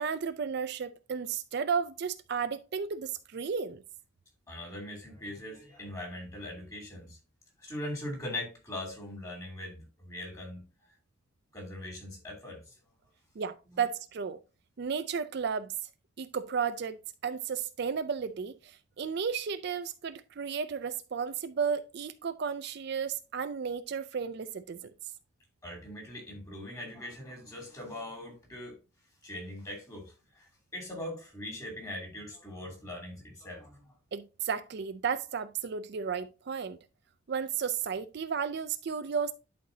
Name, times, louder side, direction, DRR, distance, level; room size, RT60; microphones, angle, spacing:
voice 1, 0.0-3.8 13.4-14.4 14.8-15.7 16.2-24.9 34.1-36.8 37.3-39.3, right 6 dB, 55° right, 0.4 m, -33 dB
voice 2, 4.5-7.2 7.6-10.6 11.5-12.7 25.6-28.8 29.2-30.4 30.7-33.8, left 1 dB, 15° left, 2.8 m, -41 dB
11.0 x 4.4 x 2.7 m
head